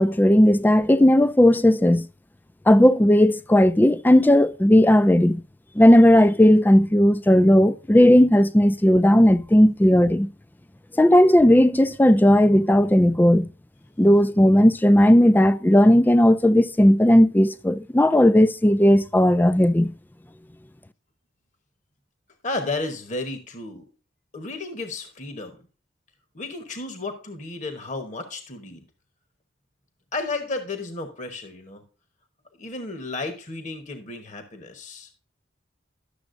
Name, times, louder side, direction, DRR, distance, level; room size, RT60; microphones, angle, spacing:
voice 1, 0.0-2.1 2.7-5.4 5.8-10.3 11.0-13.5 14.0-19.9, left 1 dB, 10° left, 0.4 m, -16 dB
voice 2, 22.4-23.8 24.3-25.6 26.3-28.8 30.1-31.8 32.6-35.1, left 3 dB, 40° left, 1.1 m, -33 dB
11.5 x 7.1 x 2.5 m
head